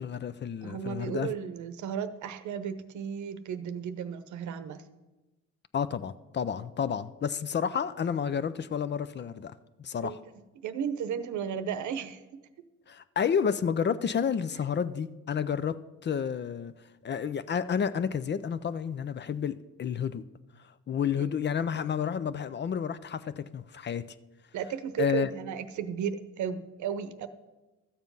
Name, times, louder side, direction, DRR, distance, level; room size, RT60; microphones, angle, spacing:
voice 1, 0.0-1.3 5.7-9.5 9.8-10.2 12.9-16.7 17.0-20.2 20.9-24.1 25.0-25.3, left 7 dB, 35° left, 14 dB, 0.5 m, -30 dB
voice 2, 0.6-4.8 10.0-10.2 10.6-12.4 21.2-21.3 24.5-27.3, right 8 dB, 70° right, 11 dB, 0.8 m, -34 dB
13.0 x 7.2 x 5.4 m, 1.1 s
cardioid pair, 90°, 30 cm